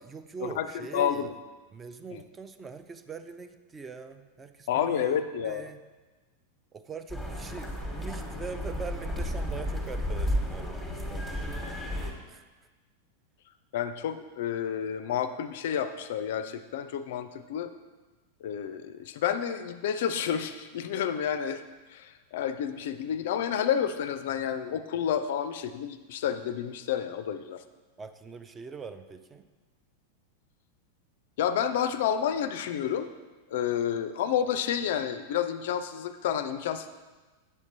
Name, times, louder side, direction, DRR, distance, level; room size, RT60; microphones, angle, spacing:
voice 1, 0.1-1.3 1.7-5.2 5.4-5.8 6.7-11.6 12.3-12.4 28.0-29.5, right 5 dB, 20° right, 10 dB, 0.4 m, -42 dB
voice 2, 0.9-1.3 2.1-2.2 4.7-5.7 13.7-17.7 18.4-21.6 21.9-27.6 31.4-33.1 33.5-36.9, left 9 dB, 55° left, 11 dB, 0.3 m, -30 dB
sound 1, 7.1-12.1, equal, ahead, 1.2 m, -33 dB
8.2 x 7.1 x 2.7 m, 1.3 s
figure-of-eight pair, 90°, 0 cm